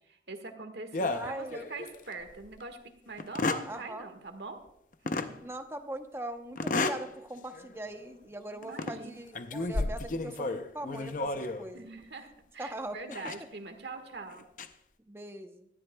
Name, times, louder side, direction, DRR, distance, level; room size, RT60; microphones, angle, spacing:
voice 1, 0.1-2.8 3.1-4.6 5.0-5.4 8.5-9.1 11.7-12.3 12.5-14.5, right 3 dB, 75° right, 6 dB, 1.5 m, -43 dB
sound 1, 0.9-2.0 2.4-2.5 3.2-3.7 5.1-5.3 6.6-7.1 7.5-7.7 8.6-9.0 9.4-11.7 13.1-13.4 14.3-14.7, left 3 dB, 45° left, 0.6 m, -32 dB
voice 2, 1.1-1.7 3.7-4.1 5.4-11.9 12.6-13.0 15.0-15.7, right 1 dB, 15° right, 7 dB, 0.7 m, -41 dB
18.0 x 13.0 x 2.2 m, 0.80 s
head